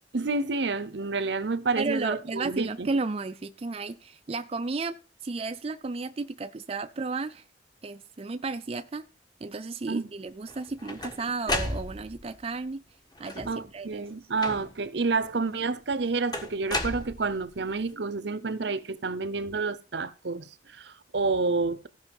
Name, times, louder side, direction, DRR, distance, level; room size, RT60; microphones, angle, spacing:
voice 1, 0.1-2.9 9.9-10.1 13.5-21.9, right 3 dB, 75° right, 0.8 m, -29 dB
voice 2, 1.8-4.9 5.2-7.4 7.8-9.0 9.4-12.8 13.2-14.0, right 3 dB, 35° right, 0.4 m, -33 dB
sound 1, 10.5-12.3 13.2-13.7 14.4-14.9 16.3-17.6, left 2 dB, 25° left, 1.4 m, -33 dB
14.5 x 5.6 x 5.3 m
head